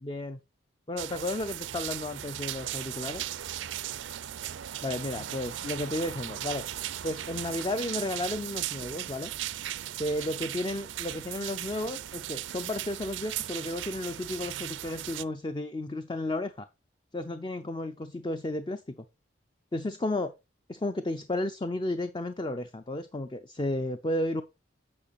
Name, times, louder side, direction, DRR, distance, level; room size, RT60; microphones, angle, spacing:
voice 1, 0.0-0.4 0.9-3.4 4.8-6.6 7.0-9.3 10.0-16.7 17.1-19.0 19.7-20.3 20.7-24.4, left 1 dB, 25° left, 0.4 m, -33 dB
sound 1, 1.0-15.2, right 12 dB, 80° right, 0.5 m, -37 dB
8.7 x 5.6 x 4.0 m
head